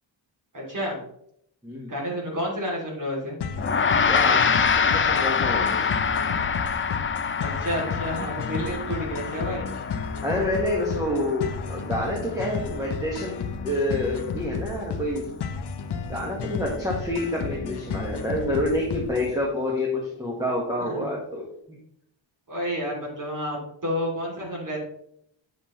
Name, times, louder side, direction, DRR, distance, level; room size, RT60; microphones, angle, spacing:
voice 1, 0.5-1.0 1.9-3.4 7.4-9.7 20.8-21.1 22.5-24.8, equal, 40° right, -3 dB, 2.8 m, -30 dB
sound 1, 3.4-19.4, left 5 dB, 55° left, 0.7 m, -33 dB
Gong, 3.6-13.1, left 6 dB, 25° left, 0.5 m, -26 dB
voice 2, 4.1-5.9 10.2-13.3 13.6-15.3 16.1-21.4, left 1 dB, 5° right, -3 dB, 1.4 m, -28 dB
8.8 x 7.2 x 3.1 m, 0.73 s
wide cardioid pair, 145°, 47 cm